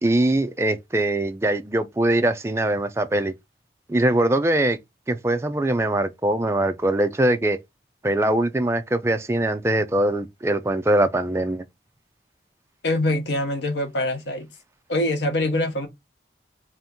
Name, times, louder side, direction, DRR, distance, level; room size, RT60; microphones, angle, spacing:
voice 1, 0.0-3.3 3.9-4.8 5.1-7.6 8.0-11.6, right 1 dB, 15° right, 0.3 m, -22 dB
voice 2, 12.8-14.5 14.9-15.9, left 1 dB, 80° left, 0.9 m, -24 dB
2.8 x 2.5 x 3.5 m
head